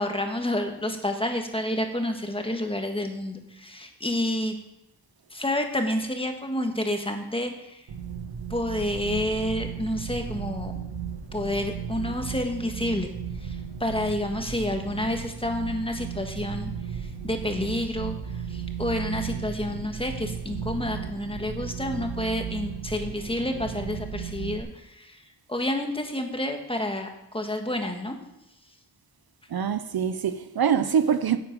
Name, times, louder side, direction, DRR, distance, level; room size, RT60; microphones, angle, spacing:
voice 1, 0.0-4.6 5.3-7.8 8.5-10.7 11.3-13.1 13.4-25.2 25.5-28.2, left 1 dB, 15° left, 1.5 m, -29 dB
sound 1, 7.9-24.6, right 7 dB, 85° right, 1.4 m, -35 dB
voice 2, 29.5-31.4, right 7 dB, 65° right, 0.7 m, -24 dB
9.9 x 8.2 x 5.3 m
wide cardioid pair, 85°, 40 cm